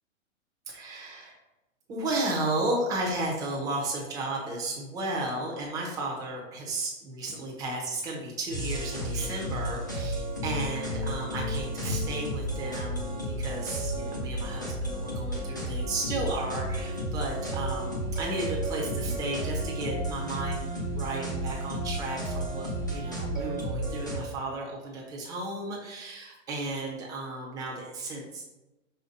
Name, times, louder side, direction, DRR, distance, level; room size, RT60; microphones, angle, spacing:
voice 1, 0.7-1.4 1.9-28.4, right 2 dB, 10° right, -2 dB, 0.8 m, -34 dB
sound 1, 8.5-24.2, right 1 dB, 15° left, 0.3 m, -32 dB
5.6 x 3.3 x 5.2 m, 1.0 s
hypercardioid pair, 165°, 39 cm